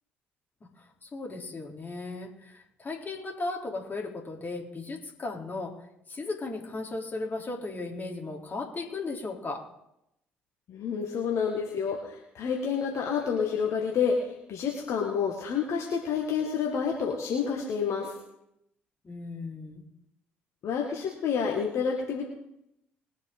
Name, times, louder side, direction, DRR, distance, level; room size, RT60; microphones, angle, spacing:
voice 1, 0.8-9.7 19.0-19.8, left 3 dB, 35° left, -1 dB, 3.5 m, -36 dB
voice 2, 10.7-14.2 14.5-18.1 20.6-22.3, left 6 dB, 55° left, 0 dB, 1.9 m, -29 dB
21.5 x 8.1 x 3.9 m, 0.81 s
hypercardioid pair, 50°, 6 cm